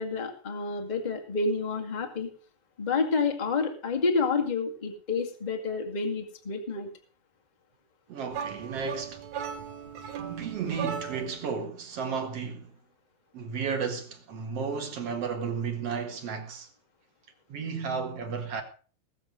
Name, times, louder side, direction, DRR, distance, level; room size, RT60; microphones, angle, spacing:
voice 1, 0.0-2.3 2.8-6.9, left 4 dB, 40° left, 0.6 m, -29 dB
voice 2, 8.1-9.3 10.2-12.7 13.3-16.7 17.5-18.6, right 5 dB, 50° right, 2.3 m, -33 dB
sound 1, 8.3-11.5, right 8 dB, 65° right, 1.9 m, -37 dB
20.0 x 7.5 x 5.2 m
omnidirectional pair, 4.6 m